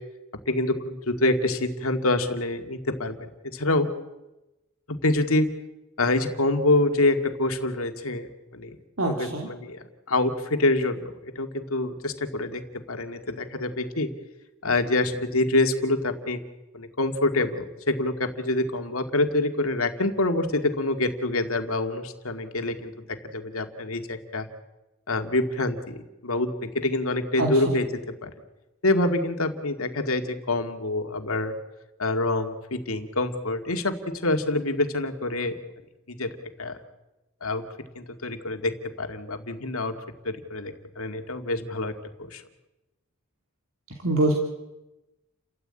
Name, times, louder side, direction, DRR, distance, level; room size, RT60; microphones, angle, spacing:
voice 1, 0.5-3.9 4.9-5.5 6.0-8.3 8.5-8.8 9.1-12.6 12.9-14.1 14.6-16.4 16.7-24.5 25.1-28.3 28.8-31.5 32.0-35.6 36.1-36.3 36.6-36.8 37.4-37.6 38.0-39.9 40.2-41.9 42.3-42.4, left 2 dB, 75° left, 6 dB, 2.2 m, -26 dB
voice 2, 9.0-9.5 27.4-27.7 44.0-44.4, right 1 dB, 65° right, 1 dB, 2.8 m, -24 dB
30.0 x 14.0 x 8.9 m, 1.0 s
head